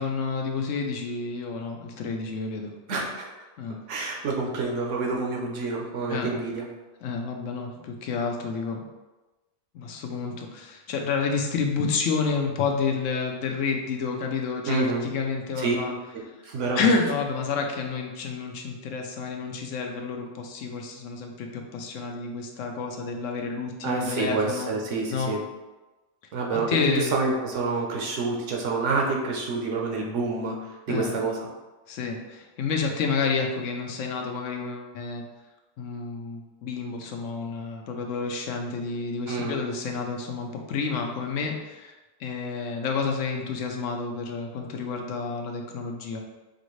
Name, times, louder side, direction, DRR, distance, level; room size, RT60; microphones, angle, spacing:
voice 1, 0.0-2.7 3.6-3.8 4.0-4.2 6.1-6.3 7.0-8.8 9.7-16.0 16.2-16.3 16.8-24.7 25.1-25.3 26.5-27.1 30.9-31.1 31.9-35.2 35.8-41.9 42.2-46.2, left 4 dB, 80° left, 2 dB, 1.0 m, -29 dB
voice 2, 2.9-3.3 3.9-6.6 14.7-15.0 15.6-15.7 16.4-16.9 23.8-25.4 26.3-31.5 39.3-39.6, right 3 dB, 75° right, 0 dB, 1.1 m, -28 dB
4.9 x 2.6 x 3.1 m, 1.1 s
omnidirectional pair, 1.3 m